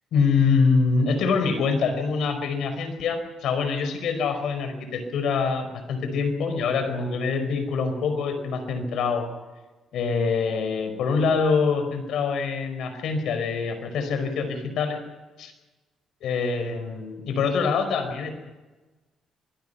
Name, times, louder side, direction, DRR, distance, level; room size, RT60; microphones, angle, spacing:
voice 1, 0.1-9.3 9.9-15.0 15.4-15.5 16.2-18.3, left 5 dB, 75° left, 8 dB, 5.0 m, -25 dB
26.5 x 21.5 x 5.7 m, 1.2 s
cardioid pair, 90°, 0 cm